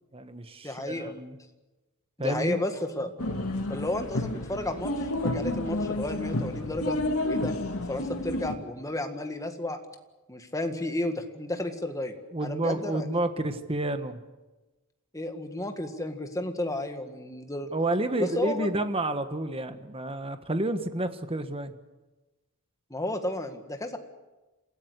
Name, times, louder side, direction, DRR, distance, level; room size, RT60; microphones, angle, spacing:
voice 1, 0.1-1.4 2.2-2.6 12.3-14.2 17.7-21.7, right 1 dB, 25° right, 9 dB, 1.4 m, -30 dB
voice 2, 0.6-1.1 2.2-3.1 3.7-7.5 7.9-9.8 10.3-12.1 12.4-13.0 15.1-17.7 18.2-18.7 22.9-24.0, left 1 dB, 15° left, 6 dB, 1.8 m, -32 dB
sound 1, 3.2-8.6, left 1 dB, 70° left, 2.3 m, -30 dB
28.0 x 15.5 x 8.2 m, 1.1 s
head